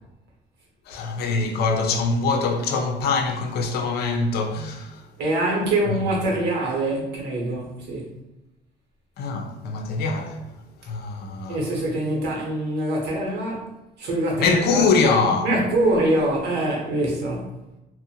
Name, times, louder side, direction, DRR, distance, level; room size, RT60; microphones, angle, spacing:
voice 1, 0.9-5.0 5.8-6.0 9.2-10.4 10.8-11.6 14.4-15.5, left 4 dB, 70° left, 0.5 m, -23 dB
voice 2, 5.2-8.0 11.5-13.7 14.0-14.9 15.4-17.5, right 1 dB, 80° right, 0.9 m, -24 dB
2.6 x 2.1 x 2.7 m
cardioid pair, 110°, 17 cm